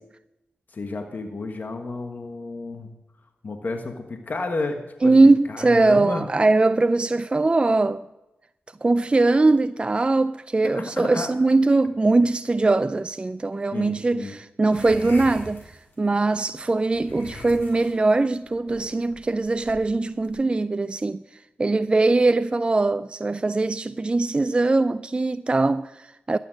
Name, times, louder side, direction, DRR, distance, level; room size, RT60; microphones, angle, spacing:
voice 1, 0.7-2.9 3.4-6.3 10.6-11.3 13.7-14.3, left 3 dB, 55° left, 1.4 m, -31 dB
voice 2, 5.0-8.0 8.8-21.2 21.6-26.4, right 3 dB, 30° right, 0.4 m, -21 dB
sound 1, 14.7-16.2 16.9-20.3, left 2 dB, 75° left, 6.1 m, -42 dB
13.0 x 9.1 x 6.4 m
cardioid pair, 55°, 4 cm